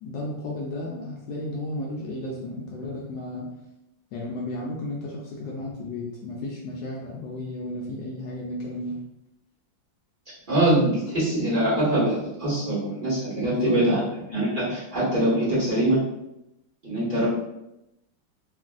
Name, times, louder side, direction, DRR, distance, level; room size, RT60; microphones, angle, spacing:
voice 1, 0.0-3.5 4.1-9.0 13.4-14.1, left 1 dB, 75° left, -3 dB, 1.1 m, -33 dB
voice 2, 10.5-14.0 14.3-16.0 16.8-17.3, right 1 dB, 30° right, -12 dB, 1.4 m, -23 dB
3.0 x 2.5 x 2.4 m, 0.86 s
omnidirectional pair, 2.1 m